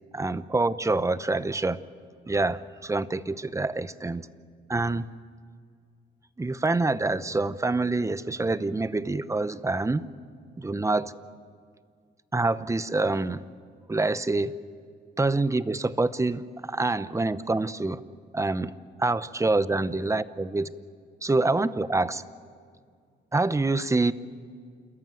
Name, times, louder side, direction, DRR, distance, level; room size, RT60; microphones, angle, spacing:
voice 1, 0.1-1.8 2.3-4.3 4.7-5.1 6.4-10.0 10.6-11.1 12.3-13.4 13.9-14.5 15.2-18.0 18.3-18.7 19.0-20.7 21.2-22.2 23.3-24.1, right 2 dB, 15° right, 15 dB, 0.8 m, -26 dB
28.5 x 14.0 x 9.4 m, 2.1 s
cardioid pair, 90°, 20 cm